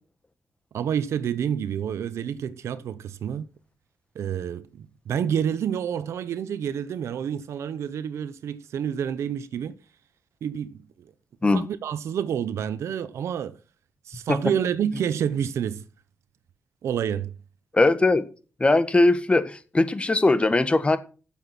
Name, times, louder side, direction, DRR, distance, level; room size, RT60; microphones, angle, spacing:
voice 1, 0.7-3.5 4.1-9.8 10.4-11.1 11.5-13.6 14.1-15.9 16.8-17.3, right 8 dB, 85° right, 1.0 m, -28 dB
voice 2, 17.7-18.2 18.6-21.0, left 2 dB, 25° left, 1.7 m, -20 dB
12.5 x 7.3 x 6.0 m
cardioid pair, 85°, 5 cm